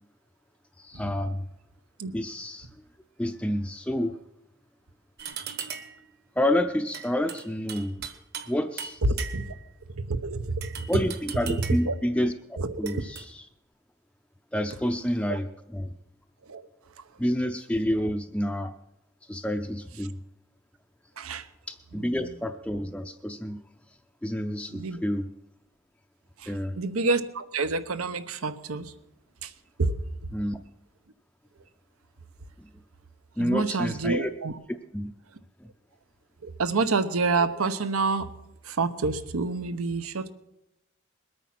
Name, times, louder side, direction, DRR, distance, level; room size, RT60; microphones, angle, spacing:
voice 1, 0.8-1.5 2.1-2.7 3.2-4.1 5.6-5.7 6.4-8.0 8.5-9.0 10.9-13.4 14.5-15.9 17.2-18.7 19.3-20.1 21.7-23.6 24.2-25.3 26.5-26.8 30.3-30.6 32.6-32.7 33.4-34.3 34.9-35.1, left 1 dB, 5° left, 0.5 m, -29 dB
sound 1, 5.2-6.0 6.9-8.5 8.8-9.7 10.6-11.9 12.9-13.3, right 8 dB, 50° right, 1.2 m, -39 dB
voice 2, 9.0-9.5 10.0-10.8 11.7-11.9 12.6-13.0 15.3-15.4 16.5-16.6 21.2-21.5 21.9-22.3 24.7-25.0 26.4-28.9 29.4-29.5 29.8-30.0 33.4-34.6 36.4-38.3 38.6-40.3, right 3 dB, 90° right, 1.0 m, -28 dB
21.0 x 9.0 x 5.9 m
head